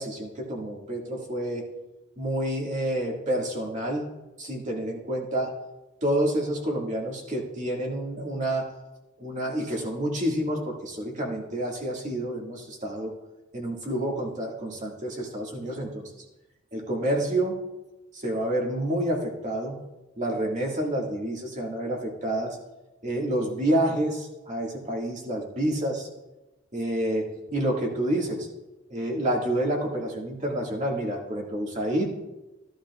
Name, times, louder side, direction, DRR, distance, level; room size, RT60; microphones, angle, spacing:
voice 1, 0.0-1.7 2.2-4.1 4.4-5.5 6.0-8.7 9.2-13.1 13.5-16.0 16.7-17.6 18.1-19.8 20.2-22.6 23.0-26.1 26.7-28.5 28.9-32.2, right 1 dB, 40° right, -1 dB, 1.9 m, -28 dB
14.5 x 11.5 x 2.4 m, 1.0 s
head